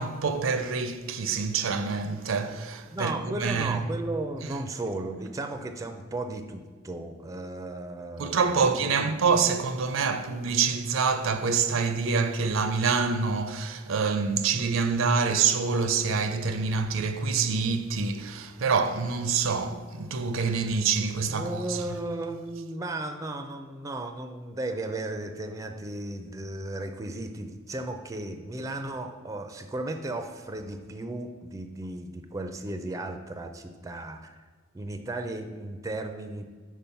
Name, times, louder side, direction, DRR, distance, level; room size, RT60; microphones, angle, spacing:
voice 1, 0.0-3.8 8.2-21.8, right 5 dB, 75° right, 0.5 m, -26 dB
voice 2, 2.9-8.9 21.3-34.4 34.7-36.4, right 2 dB, 15° right, 0.4 m, -35 dB
5.4 x 4.8 x 5.6 m
head